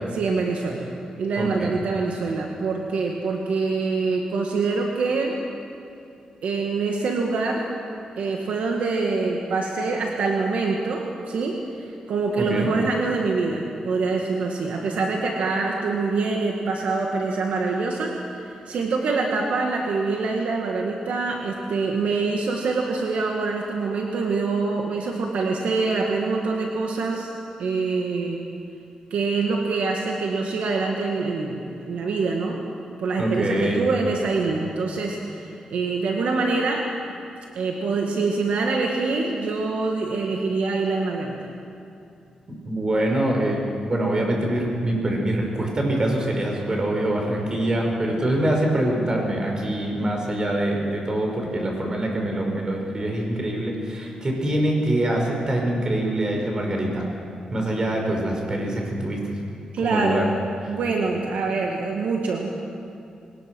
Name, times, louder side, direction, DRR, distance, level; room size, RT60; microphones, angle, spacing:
voice 1, 0.1-0.9 1.2-5.4 6.4-7.6 8.2-27.3 27.6-28.4 29.1-32.6 33.0-36.8 37.6-41.4 59.7-60.3 60.7-62.5, right 4 dB, 80° right, 1 dB, 1.9 m, -25 dB
voice 2, 1.4-1.7 12.4-12.7 33.2-33.8 42.6-57.1 57.5-59.4 59.8-60.2, right 1 dB, 35° right, 1 dB, 5.4 m, -24 dB
21.5 x 19.5 x 6.3 m, 2.6 s
cardioid pair, 85°, 2 cm